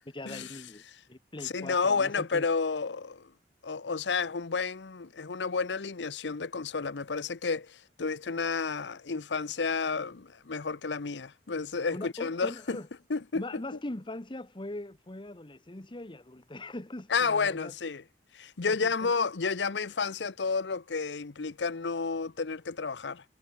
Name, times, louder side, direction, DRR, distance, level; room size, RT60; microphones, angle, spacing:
voice 1, 0.0-2.4 11.9-12.9 13.3-17.7 18.7-19.1, left 1 dB, 30° left, 1.2 m, -41 dB
voice 2, 1.4-3.3 3.6-12.8 13.1-13.4 17.1-18.0 18.3-23.2, left 4 dB, 90° left, 0.8 m, -31 dB
head